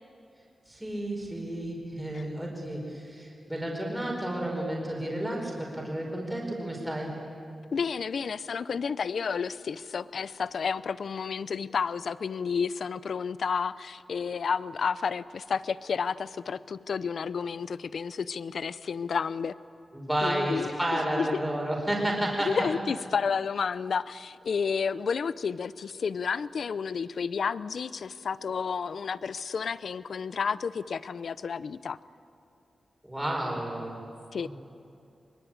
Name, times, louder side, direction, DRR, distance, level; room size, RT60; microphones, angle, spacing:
voice 1, 0.7-7.1 19.9-22.6 33.0-34.0 34.4-34.5, right 1 dB, 10° right, -1 dB, 4.8 m, -31 dB
voice 2, 7.7-19.5 20.2-21.4 22.5-32.0 34.3-34.5, left 6 dB, 65° left, 16 dB, 0.6 m, -31 dB
24.0 x 22.5 x 8.8 m, 2.6 s
wide cardioid pair, 160°, 0 cm